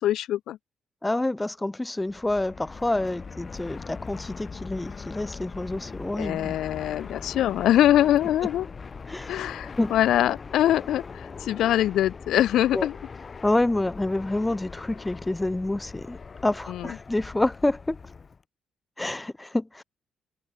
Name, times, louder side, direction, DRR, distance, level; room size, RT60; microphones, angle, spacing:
voice 1, 0.0-0.6 6.2-8.7 9.3-13.0 16.7-16.9, left 12 dB, 80° left, 2.0 m, -23 dB
voice 2, 1.0-6.5 9.1-9.4 9.8-9.9 12.7-12.9 13.4-16.2 16.4-18.0 19.0-19.8, left 2 dB, 10° left, 0.5 m, -27 dB
Fixed-wing aircraft airplane, 2.0-18.4, left 5 dB, 35° left, 3.2 m, -41 dB
cardioid pair, 90°, 0 cm